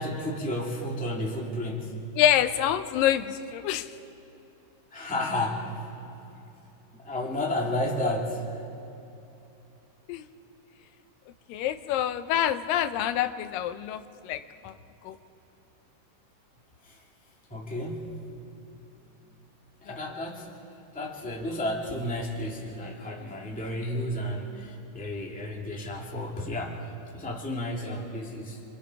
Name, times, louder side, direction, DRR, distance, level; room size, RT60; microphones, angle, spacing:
voice 1, 0.0-2.0 4.9-5.8 6.9-8.6 16.8-17.0 17.5-18.1 19.8-20.6 20.9-28.6, left 1 dB, 5° left, -2 dB, 1.7 m, -32 dB
voice 2, 2.2-3.9 10.1-10.2 11.5-14.7 15.1-15.2, left 11 dB, 85° left, 10 dB, 2.4 m, -26 dB
26.5 x 25.5 x 4.8 m, 2.8 s
omnidirectional pair, 3.9 m